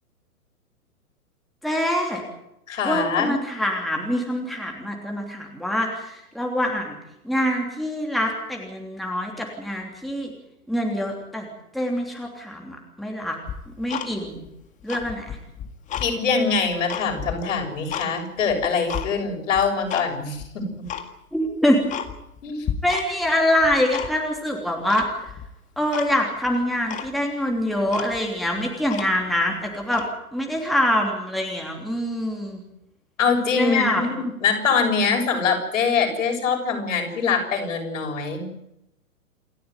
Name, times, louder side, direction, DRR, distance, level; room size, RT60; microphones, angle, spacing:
voice 1, 1.6-2.2 2.9-7.0 7.2-10.3 10.7-11.5 11.7-13.4 13.8-14.5 14.8-15.4 21.3-21.8 22.8-25.2 25.8-30.0 30.3-32.6 33.6-34.0, equal, ahead, 0 dB, 3.1 m, -25 dB
voice 2, 2.7-3.3 16.0-20.6 22.4-22.6 33.2-38.5, left 5 dB, 55° left, 4 dB, 7.0 m, -23 dB
Tick-tock, 13.5-14.5 14.8-16.1 16.5-18.1 18.5-19.1 19.6-20.1 20.4-20.5 20.9-21.1 21.5-21.6 21.9-22.4 22.6-23.3 23.6-24.4 24.9-25.5 25.9-26.1 26.5-26.6 26.9-27.1 27.6-27.7 27.9-29.4 29.8-30.1, left 9 dB, 15° left, 1.8 m, -32 dB
28.0 x 13.0 x 9.6 m, 0.84 s
figure-of-eight pair, 120°, 44 cm